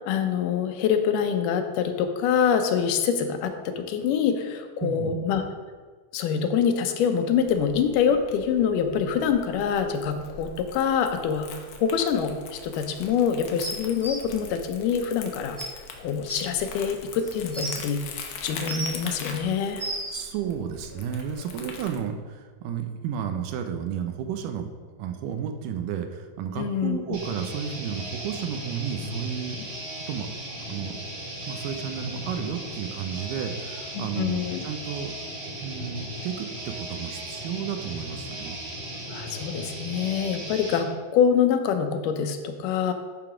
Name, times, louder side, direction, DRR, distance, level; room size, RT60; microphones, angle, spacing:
voice 1, 0.1-5.4 6.1-15.6 16.0-19.8 26.6-27.2 34.0-34.6 39.1-42.9, left 7 dB, 90° left, 6 dB, 2.3 m, -25 dB
voice 2, 4.8-5.1 20.1-24.7 25.0-29.6 30.1-30.3 30.7-31.2 31.5-35.1 35.6-38.6, right 8 dB, 85° right, 5 dB, 2.3 m, -32 dB
Crumpling crinkling, 7.4-22.0, left 5 dB, 70° left, 1.6 m, -42 dB
sound 1, 13.6-14.1 15.2-15.3 15.6-15.7 16.3-16.4 17.2-17.8 18.4-19.1 19.5-20.2 21.2-21.3, right 2 dB, 25° right, 1.9 m, -33 dB
sound 2, 27.1-40.8, equal, 70° right, 3.8 m, -37 dB
11.5 x 4.0 x 4.9 m, 1.5 s
omnidirectional pair, 3.7 m